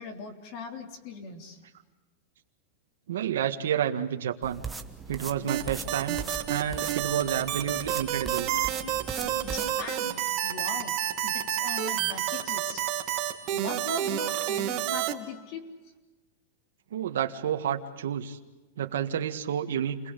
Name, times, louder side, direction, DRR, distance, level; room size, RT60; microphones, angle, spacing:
voice 1, 0.0-1.6 9.4-11.0 11.2-12.8 13.5-15.6, left 5 dB, 40° left, 4 dB, 3.6 m, -40 dB
voice 2, 3.1-4.6 5.1-6.2 6.5-8.5 16.9-18.4 18.8-20.0, right 9 dB, 85° right, 4 dB, 1.8 m, -30 dB
sound 1, 4.4-9.7, right 4 dB, 5° right, 1.3 m, -40 dB
sound 2, 5.5-15.1, right 12 dB, 35° right, 2.6 m, -29 dB
29.0 x 21.5 x 8.4 m, 1.1 s
supercardioid pair, 160°, 0 cm